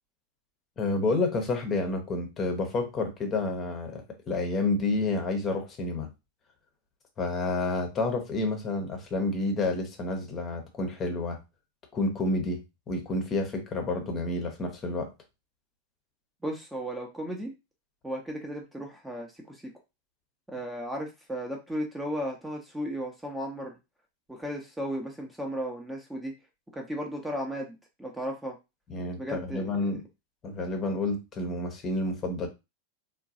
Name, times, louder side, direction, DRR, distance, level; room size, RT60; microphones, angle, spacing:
voice 1, 0.8-6.1 7.2-11.4 11.9-15.1 28.9-30.0 30.4-32.5, left 2 dB, 25° left, 0.8 m, -29 dB
voice 2, 16.4-17.5 18.0-19.6 20.5-23.7 24.3-26.3 26.7-28.5 29.2-29.6, equal, 5° right, 0.7 m, -35 dB
3.7 x 2.3 x 2.7 m
figure-of-eight pair, 90°, 0 cm